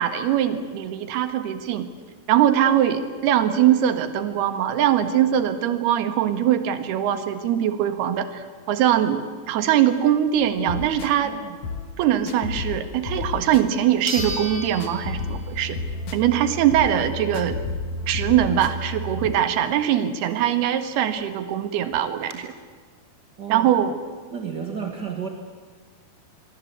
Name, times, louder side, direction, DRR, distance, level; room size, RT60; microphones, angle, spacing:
voice 1, 0.0-1.9 2.3-11.4 12.0-15.8 16.1-17.6 18.1-22.5 23.5-24.0, right 10 dB, 75° right, 9 dB, 3.5 m, -22 dB
sound 1, 10.3-19.3, left 3 dB, 55° left, 2.3 m, -32 dB
voice 2, 11.2-11.6 23.4-23.8 24.3-25.3, right 7 dB, 50° right, 3 dB, 1.2 m, -33 dB
sound 2, 13.2-13.3 14.1-15.8 16.2-16.3 20.9-21.0 21.2-21.3 21.9-22.3, right 1 dB, 10° right, 2.5 m, -34 dB
25.0 x 24.0 x 8.3 m, 1.5 s
omnidirectional pair, 4.8 m